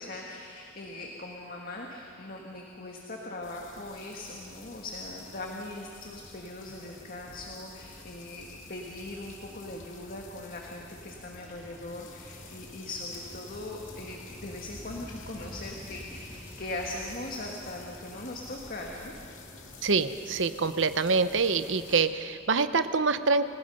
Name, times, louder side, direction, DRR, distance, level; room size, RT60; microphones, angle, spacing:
voice 1, 0.0-19.2, left 2 dB, 50° left, 0 dB, 1.7 m, -40 dB
sound 1, 3.4-22.0, left 6 dB, 85° left, 2.6 m, -52 dB
sound 2, 3.4-22.0, equal, 10° right, 3.9 m, -50 dB
voice 2, 19.8-23.5, right 4 dB, 70° right, 11 dB, 0.8 m, -25 dB
29.5 x 18.5 x 5.4 m, 2.5 s
head